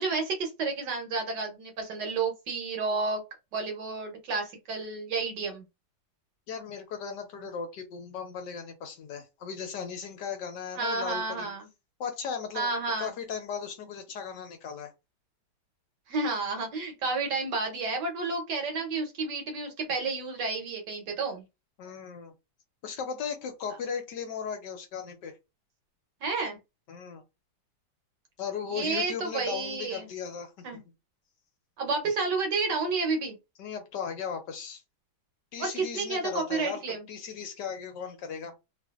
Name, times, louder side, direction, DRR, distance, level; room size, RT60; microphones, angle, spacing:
voice 1, 0.0-3.2 3.5-5.6 10.7-11.7 12.5-13.1 16.1-21.4 26.2-26.6 28.7-30.1 30.6-30.8 31.8-33.4 35.6-37.0, right 4 dB, 65° right, 3 dB, 1.5 m, -31 dB
voice 2, 6.5-11.5 12.0-12.7 13.0-14.9 21.8-22.3 22.8-25.3 26.9-27.2 28.4-30.7 33.6-34.8 35.5-38.5, left 6 dB, 70° left, 5 dB, 1.3 m, -37 dB
3.3 x 2.5 x 2.4 m, 0.24 s
omnidirectional pair, 2.1 m